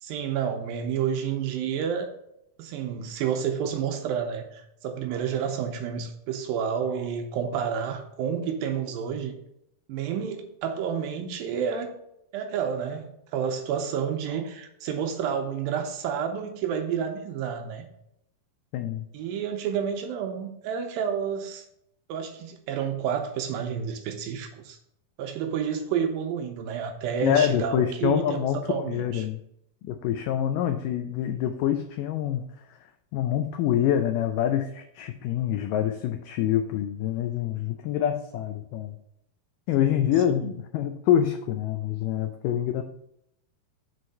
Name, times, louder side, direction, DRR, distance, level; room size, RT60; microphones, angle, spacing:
voice 1, 0.0-2.1 2.6-9.3 9.9-11.9 12.3-17.8 19.1-21.6 22.1-24.8 25.2-29.3 39.9-40.0 40.3-40.4, right 7 dB, 80° right, 5 dB, 2.3 m, -30 dB
voice 2, 18.7-19.1 27.2-29.4 29.8-32.4 32.7-32.8 33.1-39.0 39.7-42.8, left 10 dB, 85° left, 7 dB, 1.9 m, -26 dB
6.3 x 4.4 x 5.4 m, 0.79 s
omnidirectional pair, 4.3 m